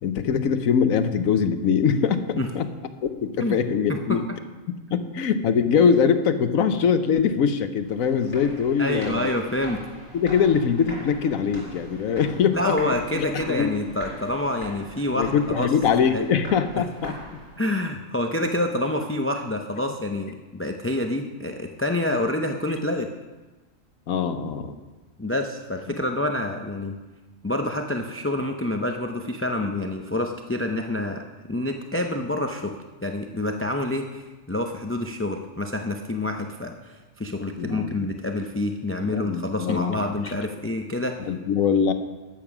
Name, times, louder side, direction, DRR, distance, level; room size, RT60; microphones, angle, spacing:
voice 1, 0.0-2.7 3.0-4.2 4.9-9.3 10.1-12.8 13.1-13.7 15.1-17.1 24.1-24.8 37.6-38.1 39.0-39.9 40.2-40.3 41.3-41.9, left 6 dB, 85° left, 10 dB, 1.3 m, -22 dB
sound 1, 7.8-17.8, equal, 60° left, 4.9 m, -41 dB
voice 2, 8.8-9.9 12.5-15.7 16.1-16.2 16.8-16.9 17.6-23.1 25.2-27.0 27.4-31.2 31.5-32.7 33.0-41.2, left 1 dB, 15° left, 4 dB, 0.4 m, -27 dB
12.5 x 8.7 x 6.0 m, 1.2 s
omnidirectional pair, 1.4 m